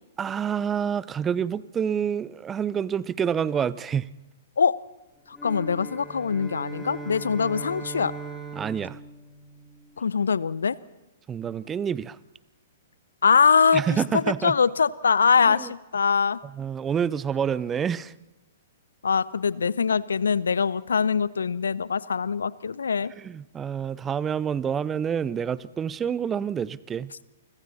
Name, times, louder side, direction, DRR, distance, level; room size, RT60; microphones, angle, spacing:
voice 1, 0.2-4.1 8.5-9.0 11.3-12.2 13.7-14.6 15.5-15.7 16.4-18.1 23.1-27.1, right 7 dB, 20° right, 20 dB, 0.8 m, -28 dB
voice 2, 5.3-8.1 10.0-10.7 13.2-13.8 14.4-16.4 19.0-23.1, left 6 dB, 75° left, 20 dB, 0.9 m, -23 dB
sound 1, 5.3-10.0, right 3 dB, 5° left, 4.9 m, -39 dB
29.5 x 25.0 x 4.2 m, 1.0 s
figure-of-eight pair, 115°, 0 cm